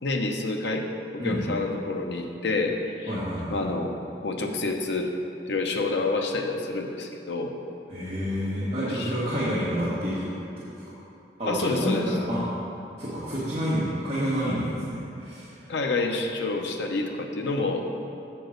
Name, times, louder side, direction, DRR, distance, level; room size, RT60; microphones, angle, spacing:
voice 1, 0.0-0.9 1.1-3.1 3.5-3.9 4.2-5.1 5.5-7.5 8.8-9.1 11.5-12.1 15.7-17.8, left 3 dB, 75° left, 3 dB, 0.7 m, -28 dB
voice 2, 3.1-3.7 7.9-10.3 10.7-10.8 11.4-12.4 13.0-15.7, equal, 35° right, -11 dB, 1.5 m, -29 dB
7.7 x 4.6 x 6.4 m, 2.7 s
head